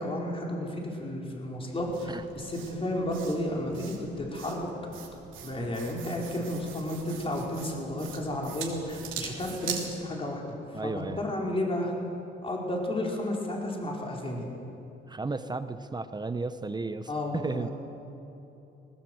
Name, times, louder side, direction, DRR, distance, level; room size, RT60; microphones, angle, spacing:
voice 1, 0.0-4.7 5.4-10.5 10.8-11.9 12.4-14.4 17.1-17.7, left 1 dB, 30° left, -1 dB, 4.7 m, -32 dB
sound 1, 1.8-9.9, right 7 dB, 80° right, 3.1 m, -42 dB
voice 2, 10.7-11.2 15.1-17.7, right 3 dB, 20° right, 10 dB, 0.9 m, -33 dB
19.5 x 19.5 x 8.0 m, 3.0 s
cardioid pair, 90°, 20 cm